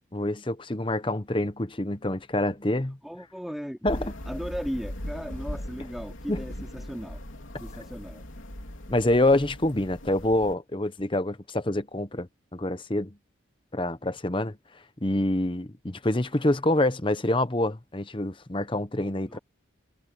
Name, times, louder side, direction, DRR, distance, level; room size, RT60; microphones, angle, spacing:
voice 1, 0.1-3.0 3.8-4.1 6.3-6.4 8.9-13.2 13.7-14.6 15.0-19.4, left 1 dB, 25° left, 1.0 m, -26 dB
voice 2, 3.0-7.2 7.6-8.2 19.3-19.4, equal, ahead, 2.8 m, -37 dB
sound 1, 3.9-10.5, left 1 dB, 85° left, 3.4 m, -39 dB
head